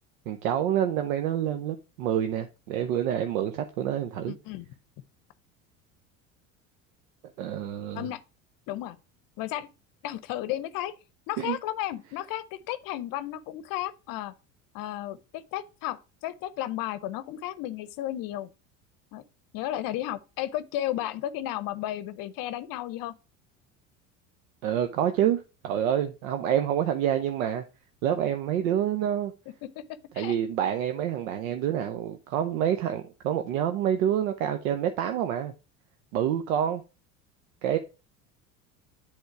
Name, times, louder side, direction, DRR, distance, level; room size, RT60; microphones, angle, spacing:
voice 1, 0.3-4.3 7.4-8.1 11.4-11.6 24.6-27.6 28.0-29.3 30.2-35.5 36.1-36.8 37.6-37.8, right 10 dB, 75° right, 0.8 m, -27 dB
voice 2, 4.3-4.7 7.9-8.2 8.7-9.0 9.4-9.7 10.0-10.9 11.3-14.3 14.7-18.5 19.1-19.2 19.5-23.1 29.8-29.9 30.1-30.4, left 13 dB, 55° left, 0.7 m, -33 dB
7.9 x 3.6 x 4.6 m
hypercardioid pair, 80°, 40 cm